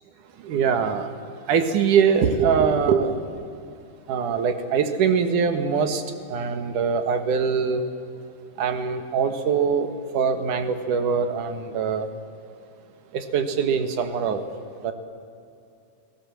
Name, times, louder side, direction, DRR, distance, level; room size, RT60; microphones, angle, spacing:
voice 1, 0.4-1.1 1.5-3.1 4.1-6.0 6.3-7.8 8.6-12.1 13.1-14.4 14.8-14.9, right 6 dB, 65° right, 8 dB, 2.9 m, -22 dB
29.5 x 17.5 x 7.6 m, 2.6 s
omnidirectional pair, 4.1 m